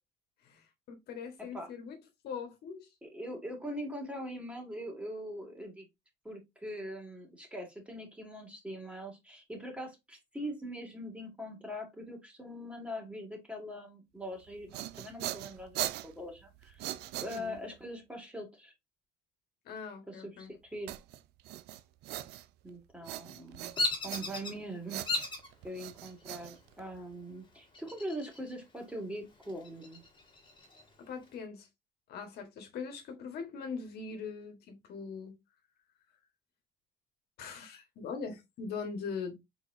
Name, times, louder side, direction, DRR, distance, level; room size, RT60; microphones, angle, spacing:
voice 1, 0.4-2.0 2.2-2.9 17.3-17.6 19.6-20.5 31.1-31.7 32.1-35.4 37.4-39.4, left 5 dB, 70° left, 1.3 m, -41 dB
voice 2, 1.4-1.7 3.0-5.9 6.2-16.8 17.2-18.7 20.1-21.0 22.6-23.7 24.0-25.0 25.6-30.0, equal, 5° right, 2.0 m, -42 dB
sound 1, 14.4-17.8 20.9-22.7 23.0-24.6 24.9-27.1, right 14 dB, 80° right, 0.4 m, -41 dB
Bird vocalization bird call bird song, 23.8-24.5 25.1-25.5 26.1-26.6 27.7-28.5 28.9-29.0 29.4-30.8, left 2 dB, 30° left, 1.9 m, -35 dB
4.2 x 4.1 x 2.5 m
cardioid pair, 110°, 17 cm